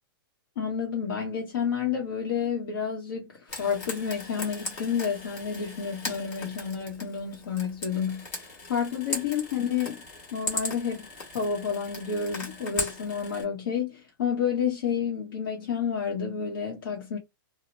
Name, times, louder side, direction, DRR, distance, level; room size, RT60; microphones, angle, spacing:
voice 1, 0.6-10.0 10.3-11.1 11.3-17.2, left 7 dB, 65° left, 0.9 m, -30 dB
Frying (food), 3.5-13.4, left 3 dB, 35° left, 1.4 m, -38 dB
2.7 x 2.0 x 2.8 m
hypercardioid pair, 170°, 12 cm